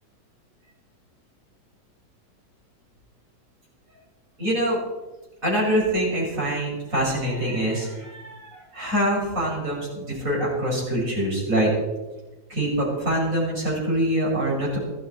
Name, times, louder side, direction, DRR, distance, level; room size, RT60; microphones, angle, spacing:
voice 1, 4.4-4.8 5.4-11.7 12.5-14.8, right 1 dB, 50° right, -5 dB, 6.7 m, -24 dB
17.0 x 14.5 x 4.5 m, 1.1 s
omnidirectional pair, 1.8 m